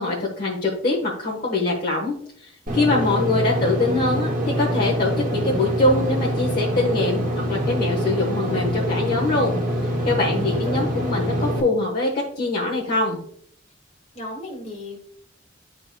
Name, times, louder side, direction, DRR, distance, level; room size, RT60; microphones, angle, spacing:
voice 1, 0.0-2.1 2.7-4.3 4.6-7.2 7.5-9.5 10.0-12.1 12.4-13.2, left 2 dB, 50° left, -3 dB, 1.1 m, -23 dB
Engine / Mechanisms, 2.7-11.6, equal, 45° right, 1.5 m, -25 dB
voice 2, 10.2-10.8 14.1-15.0, left 1 dB, 35° left, 1 dB, 1.7 m, -36 dB
10.5 x 3.9 x 2.2 m, 0.64 s
head